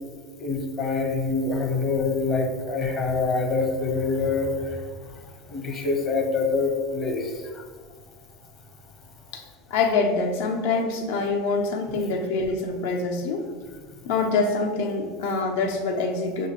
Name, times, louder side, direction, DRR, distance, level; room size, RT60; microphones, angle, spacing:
voice 1, 0.4-4.8 5.5-7.3, left 4 dB, 40° left, 2 dB, 0.8 m, -25 dB
voice 2, 9.7-13.5 14.0-16.5, left 4 dB, 75° left, 2 dB, 0.6 m, -25 dB
5.8 x 2.5 x 2.9 m, 1.5 s
supercardioid pair, 110°, 0 cm